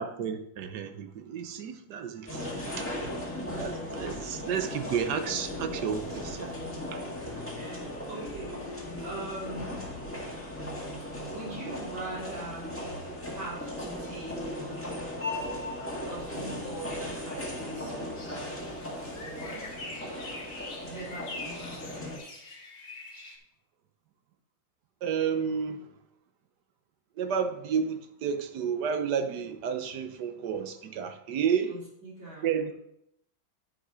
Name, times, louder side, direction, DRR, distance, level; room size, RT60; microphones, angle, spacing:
voice 1, 0.0-2.5 2.8-2.9 3.5-6.5 6.9-7.0 25.0-25.9 27.2-31.8 32.4-32.7, right 7 dB, 65° right, 8 dB, 1.4 m, -31 dB
voice 2, 2.1-2.6 7.5-9.8 11.0-12.8 13.2-14.8 16.0-18.5 19.2-19.7 20.8-22.4 31.7-32.7, right 2 dB, 90° right, -7 dB, 5.0 m, -43 dB
sound 1, 2.3-22.2, left 1 dB, 5° left, 1.7 m, -37 dB
sound 2, 4.5-14.6, left 3 dB, 55° left, 1.3 m, -47 dB
sound 3, 18.2-23.4, left 3 dB, 70° left, 2.3 m, -44 dB
9.8 x 5.6 x 5.0 m, 0.77 s
omnidirectional pair, 2.1 m